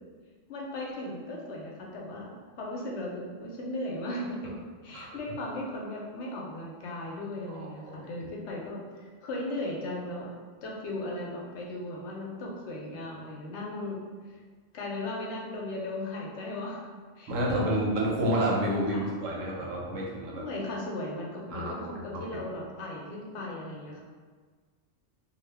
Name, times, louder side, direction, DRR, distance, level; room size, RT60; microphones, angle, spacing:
voice 1, 0.5-4.5 4.8-10.3 10.6-14.0 14.3-14.4 14.7-16.8 17.2-17.9 18.9-19.1 20.4-24.0, left 1 dB, 70° left, -2 dB, 0.8 m, -37 dB
voice 2, 17.3-20.5 21.5-21.7 22.1-22.2, right 1 dB, 85° right, -3 dB, 1.0 m, -29 dB
2.4 x 2.1 x 3.3 m, 1.5 s
omnidirectional pair, 1.3 m